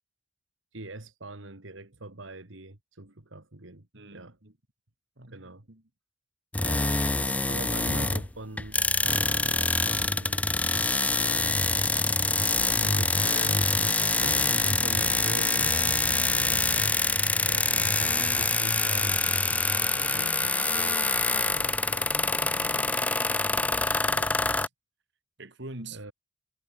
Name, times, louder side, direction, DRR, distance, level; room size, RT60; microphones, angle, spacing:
voice 1, 0.7-3.9 4.1-4.4 5.3-5.7 6.6-7.1 7.5-10.5 12.7-17.0 17.5-22.1 24.0-24.4 25.9-26.1, right 2 dB, 85° right, 2.4 m, -43 dB
voice 2, 3.9-4.5 5.2-5.8 7.2-7.4 20.4-20.6 22.1-23.1 25.4-26.1, right 2 dB, 65° right, 3.1 m, -46 dB
sound 1, 6.5-8.3 8.6-24.7, left 3 dB, 5° left, 0.4 m, -25 dB
head